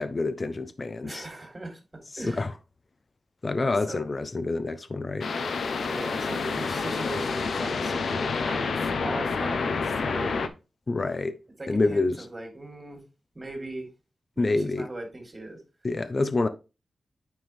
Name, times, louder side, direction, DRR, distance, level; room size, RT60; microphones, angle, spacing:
voice 1, 0.0-1.3 2.1-2.5 3.4-5.3 10.9-11.4 11.7-12.2 14.4-14.9 15.8-16.5, left 3 dB, 40° left, 0.8 m, -27 dB
voice 2, 1.0-1.8 2.2-2.4 3.6-4.0 5.8-10.5 11.6-13.0 13.3-13.9 14.3-15.6, right 2 dB, 25° right, 3.4 m, -39 dB
sound 1, 5.2-10.5, left 4 dB, 80° left, 0.9 m, -28 dB
9.4 x 4.6 x 3.5 m
wide cardioid pair, 80°, 0 cm